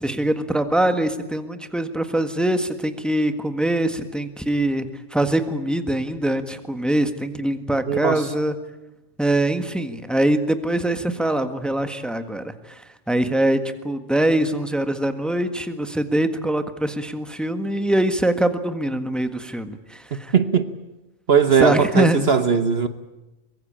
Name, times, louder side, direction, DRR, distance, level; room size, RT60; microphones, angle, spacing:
voice 1, 0.0-8.5 9.2-20.3 21.6-22.3, right 1 dB, ahead, 8 dB, 1.5 m, -23 dB
voice 2, 7.9-8.3 20.3-20.7 21.3-22.9, right 6 dB, 55° right, 10 dB, 1.2 m, -18 dB
24.0 x 22.5 x 8.8 m, 1.0 s
omnidirectional pair, 1.3 m